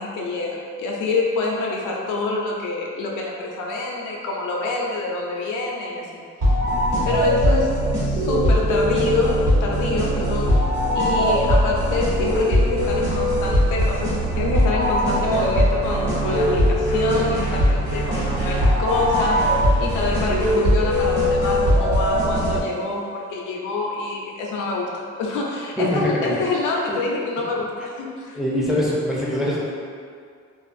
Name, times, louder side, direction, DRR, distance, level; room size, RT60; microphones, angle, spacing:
voice 1, 0.0-6.2 7.1-10.6 10.9-19.4 19.8-28.4, left 3 dB, 85° left, -2 dB, 0.5 m, -26 dB
sound 1, 6.4-22.9, equal, 65° right, 1.1 m, -20 dB
voice 2, 25.8-26.4 26.9-27.0 28.3-29.6, left 1 dB, ahead, -6 dB, 0.5 m, -23 dB
2.4 x 2.3 x 2.5 m, 2.2 s
cardioid pair, 90°, 30 cm